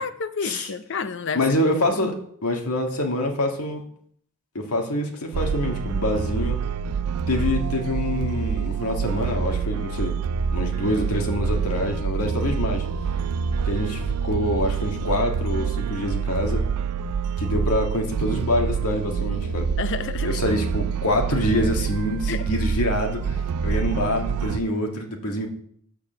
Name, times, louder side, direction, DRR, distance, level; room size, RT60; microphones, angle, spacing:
voice 1, 0.0-1.4 2.0-2.1 19.8-20.4 22.3-22.5, left 5 dB, 55° left, 13 dB, 0.6 m, -30 dB
voice 2, 1.3-2.2 2.4-3.8 4.6-6.6 7.3-10.1 10.5-12.9 13.6-16.6 17.4-19.7 20.2-23.4 23.6-25.5, left 1 dB, 85° left, 2 dB, 1.7 m, -25 dB
sound 1, 5.3-24.6, right 6 dB, 90° right, 0.4 m, -26 dB
7.0 x 6.8 x 6.8 m, 0.65 s
head